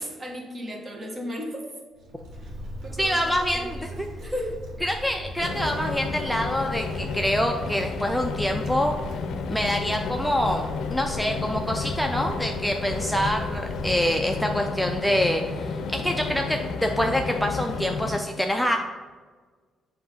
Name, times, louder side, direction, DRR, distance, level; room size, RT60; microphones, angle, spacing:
voice 1, 0.0-1.7 2.4-2.5 2.8-4.6, equal, 30° right, 1 dB, 1.4 m, -35 dB
Wind, 1.9-14.8, equal, 75° right, 1.7 m, -39 dB
voice 2, 3.0-4.1 4.8-8.9 9.5-18.8, equal, 5° left, 3 dB, 0.4 m, -26 dB
sound 1, 5.4-18.2, left 5 dB, 75° left, 0.5 m, -32 dB
7.7 x 2.8 x 5.6 m, 1.5 s
cardioid pair, 90°, 0 cm